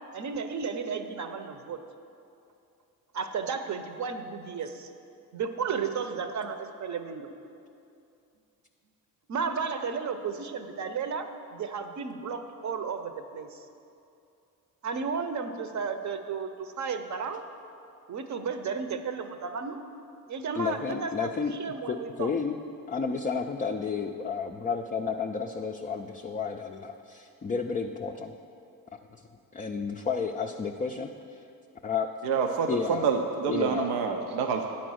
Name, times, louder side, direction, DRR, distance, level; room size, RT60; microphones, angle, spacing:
voice 1, 0.1-1.8 3.1-4.9 5.3-7.3 9.3-13.5 14.8-17.4 18.1-19.8 20.3-21.3 21.6-22.3, right 5 dB, 45° right, 8 dB, 0.7 m, -33 dB
voice 2, 20.5-21.5 21.9-22.6 22.9-28.4 29.5-31.4 31.8-32.1 32.7-33.1 33.5-33.9, left 5 dB, 20° left, 3 dB, 0.3 m, -31 dB
voice 3, 32.2-34.7, right 6 dB, 85° right, 4 dB, 0.6 m, -27 dB
9.1 x 4.3 x 6.2 m, 2.6 s
supercardioid pair, 65°, 40 cm